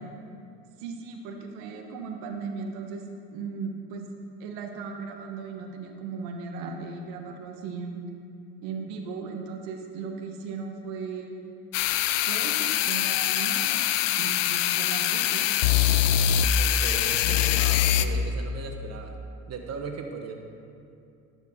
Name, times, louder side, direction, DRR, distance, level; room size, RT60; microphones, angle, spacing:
voice 1, 0.8-4.1 4.4-8.0 8.6-11.4 12.3-13.9 14.2-15.5, right 5 dB, 80° right, 3 dB, 1.3 m, -37 dB
sound 1, 11.7-18.0, left 11 dB, 90° left, 0.5 m, -23 dB
voice 2, 16.6-19.1 19.5-20.3, right 5 dB, 45° right, 3 dB, 1.3 m, -37 dB
11.5 x 5.5 x 6.3 m, 2.5 s
hypercardioid pair, 70°, 37 cm